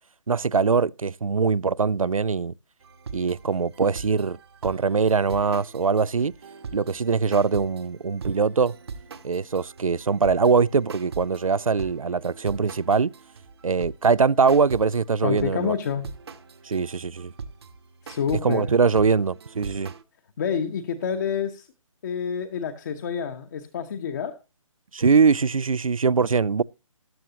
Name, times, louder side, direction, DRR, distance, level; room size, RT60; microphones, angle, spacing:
voice 1, 0.3-2.5 3.1-4.4 4.6-6.3 6.7-8.7 9.2-13.1 13.6-15.8 16.6-17.3 18.4-19.9 24.9-26.6, right 5 dB, 80° right, 0.5 m, -22 dB
sound 1, 2.8-15.0 15.4-20.0, right 5 dB, 50° right, 1.1 m, -41 dB
voice 2, 15.2-16.1 18.0-18.7 20.4-21.7 22.0-24.4, left 7 dB, 35° left, 1.0 m, -28 dB
14.0 x 11.0 x 2.8 m
figure-of-eight pair, 145°, 17 cm